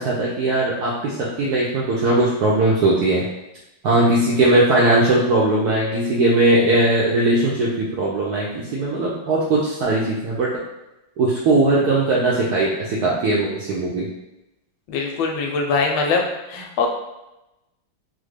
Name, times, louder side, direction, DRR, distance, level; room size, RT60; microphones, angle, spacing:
voice 1, 0.0-3.2 3.8-10.5 11.2-14.1, right 2 dB, 80° right, -6 dB, 0.9 m, -19 dB
voice 2, 14.9-16.2 16.5-16.9, left 4 dB, 80° left, 2 dB, 1.3 m, -22 dB
3.6 x 2.1 x 3.2 m, 0.94 s
omnidirectional pair, 2.2 m